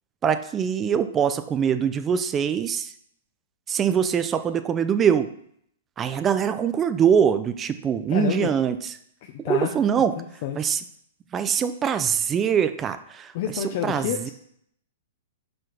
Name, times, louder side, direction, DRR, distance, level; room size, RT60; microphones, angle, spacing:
voice 1, 0.2-2.9 3.7-5.3 6.0-8.8 9.5-10.1 10.6-10.8 11.3-13.3 13.8-14.3, right 8 dB, 20° right, 11 dB, 0.5 m, -23 dB
voice 2, 8.1-8.5 9.2-9.7 10.2-10.7 13.3-14.3, left 10 dB, 50° left, 2 dB, 0.8 m, -29 dB
5.7 x 5.2 x 6.0 m, 0.69 s
hypercardioid pair, 125°, 0 cm